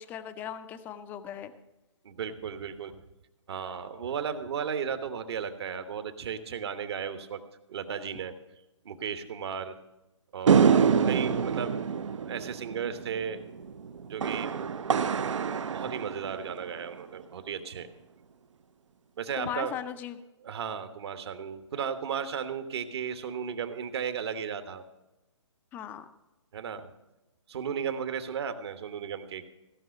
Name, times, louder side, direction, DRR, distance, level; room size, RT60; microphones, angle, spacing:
voice 1, 0.0-1.5 19.3-20.2 25.7-26.1, left 9 dB, 10° left, 10 dB, 0.4 m, -38 dB
voice 2, 2.0-2.9 3.5-7.4 7.7-8.3 8.8-9.8 10.3-10.8 11.1-13.4 14.0-14.6 15.7-17.9 19.2-19.8 20.4-24.8 26.5-26.9 27.5-29.5, right 7 dB, 55° right, 9 dB, 1.2 m, -35 dB
sound 1, 10.5-17.0, right 6 dB, 70° right, 0.7 m, -26 dB
16.0 x 5.6 x 6.6 m, 0.98 s
hypercardioid pair, 145°, 16 cm